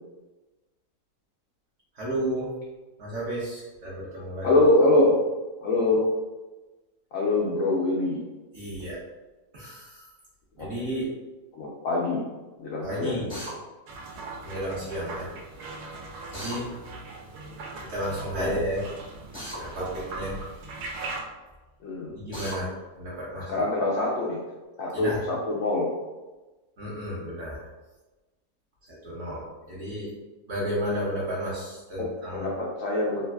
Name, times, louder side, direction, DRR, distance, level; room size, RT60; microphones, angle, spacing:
voice 1, 2.0-2.5 3.0-4.5 8.5-9.0 9.5-10.0 10.6-11.1 12.8-13.3 14.4-15.3 16.3-16.7 17.8-18.8 19.5-20.5 22.1-22.7 23.0-23.6 24.9-25.2 26.8-27.6 29.0-30.1 30.5-32.5, equal, 65° right, -7 dB, 0.8 m, -32 dB
voice 2, 4.4-5.2 5.6-6.0 7.1-8.2 10.6-10.7 11.5-12.2 12.6-13.3 18.4-18.5 21.8-22.1 23.5-24.4 24.8-25.9 32.0-33.2, left 2 dB, 90° left, -3 dB, 0.7 m, -24 dB
Drill, 13.3-13.5 16.3-16.6 19.3-19.6 22.3-22.6, equal, 10° right, 0.3 m, -36 dB
sound 1, 13.9-21.2, right 3 dB, 90° right, 1.3 m, -40 dB
3.1 x 2.6 x 2.2 m, 1.2 s
omnidirectional pair, 1.9 m